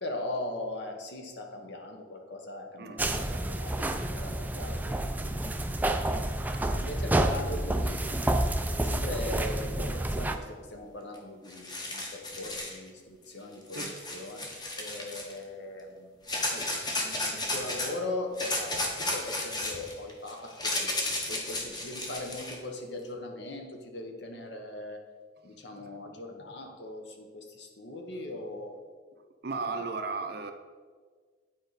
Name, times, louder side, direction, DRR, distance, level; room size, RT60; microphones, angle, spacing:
voice 1, 0.0-5.5 6.6-8.0 8.8-14.5 14.8-16.1 16.5-21.0 21.3-25.0 25.4-28.8 29.6-29.9, left 2 dB, 65° left, 3 dB, 1.0 m, -40 dB
sound 1, 3.0-10.4, right 1 dB, 10° right, 0.3 m, -29 dB
sound 2, 11.2-11.3 11.5-12.8 13.7-15.4 16.3-17.9 18.4-22.6, left 2 dB, 20° left, 1.0 m, -33 dB
voice 2, 29.4-30.5, right 4 dB, 55° right, 6 dB, 0.6 m, -35 dB
9.0 x 4.7 x 4.0 m, 1.5 s
head